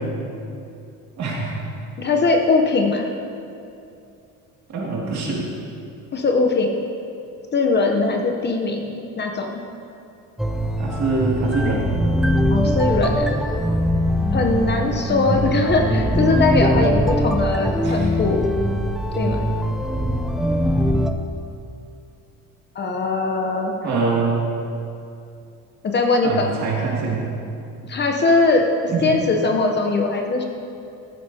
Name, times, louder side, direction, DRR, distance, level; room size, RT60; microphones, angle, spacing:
voice 1, 1.2-1.5 4.7-5.5 10.8-12.0 15.3-15.5 17.8-18.0 23.8-24.4 26.2-27.2 28.9-29.1, right 3 dB, 55° right, -3 dB, 2.4 m, -24 dB
voice 2, 2.0-3.1 6.1-6.7 7.5-9.6 12.5-13.3 14.3-18.5 19.2-19.4 22.7-23.7 25.8-26.5 27.9-28.7 29.0-30.4, left 3 dB, 30° left, 3 dB, 0.8 m, -20 dB
sound 1, 10.4-21.1, equal, ahead, 0.4 m, -21 dB
14.0 x 8.3 x 2.8 m, 2.6 s
cardioid pair, 135°, 33 cm